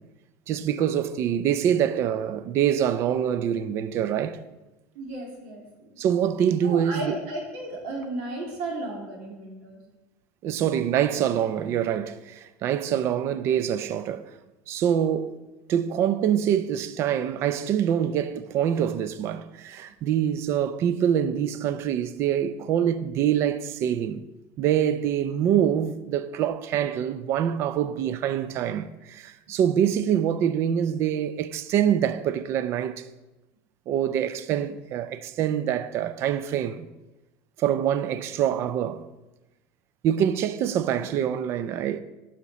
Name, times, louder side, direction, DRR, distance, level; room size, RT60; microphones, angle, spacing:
voice 1, 0.5-4.4 6.0-7.1 10.4-14.3 14.7-15.4 15.7-24.2 24.6-33.0 33.9-36.9 37.6-39.0 40.0-42.0, right 9 dB, 40° right, 0.4 m, -25 dB
voice 2, 4.9-6.0 6.6-9.8, right 2 dB, 85° right, 2.5 m, -34 dB
11.0 x 5.8 x 4.1 m
cardioid pair, 160°, 7 cm